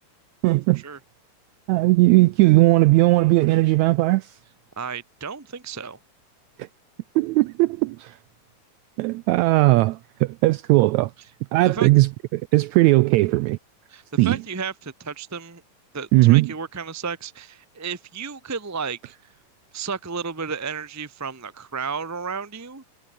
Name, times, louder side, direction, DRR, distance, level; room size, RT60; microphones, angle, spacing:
voice 1, 0.4-0.8 1.7-4.4 7.1-8.2 9.0-11.1 11.5-13.6 14.2-14.4 16.1-16.5, right 20 dB, 85° right, 1.6 m, -18 dB
voice 2, 4.8-6.0 11.6-11.9 13.9-15.6 15.9-19.1 19.7-22.8, right 5 dB, 15° right, 0.5 m, -32 dB
omnidirectional pair, 3.7 m